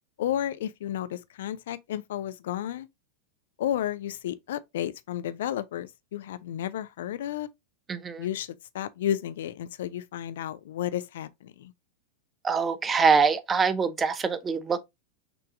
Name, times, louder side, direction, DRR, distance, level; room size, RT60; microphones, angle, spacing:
voice 1, 0.2-2.9 3.6-7.5 8.2-11.7, left 11 dB, 60° left, 0.4 m, -32 dB
voice 2, 7.9-8.2 12.4-14.8, right 5 dB, 20° right, 0.5 m, -24 dB
6.0 x 3.3 x 2.5 m
figure-of-eight pair, 90°, 0 cm